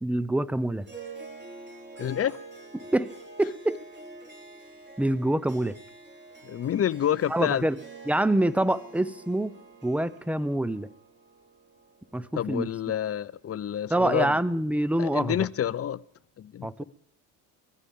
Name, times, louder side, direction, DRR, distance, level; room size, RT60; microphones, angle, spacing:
voice 1, 0.0-0.9 2.9-3.1 3.4-3.8 5.0-5.8 7.3-7.8 8.1-9.6 9.8-10.9 12.1-12.7 13.9-15.4 16.6-16.8, right 1 dB, 5° right, 0.8 m, -26 dB
Harp, 0.8-13.4, right 3 dB, 25° right, 4.5 m, -47 dB
voice 2, 2.0-2.3 6.4-7.7 12.4-14.3 15.0-16.0 16.4-16.8, left 10 dB, 35° left, 0.6 m, -28 dB
22.0 x 15.0 x 3.7 m
hypercardioid pair, 65°, 45 cm